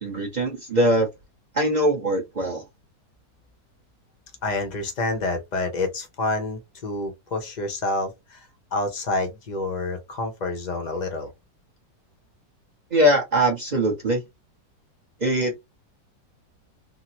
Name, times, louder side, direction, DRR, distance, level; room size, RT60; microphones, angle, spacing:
voice 1, 0.0-1.1 1.5-2.6 12.9-14.2 15.2-15.6, equal, 45° right, 0.6 m, -22 dB
voice 2, 4.4-11.3, left 2 dB, 65° left, 0.4 m, -28 dB
3.6 x 2.1 x 2.8 m
omnidirectional pair, 1.9 m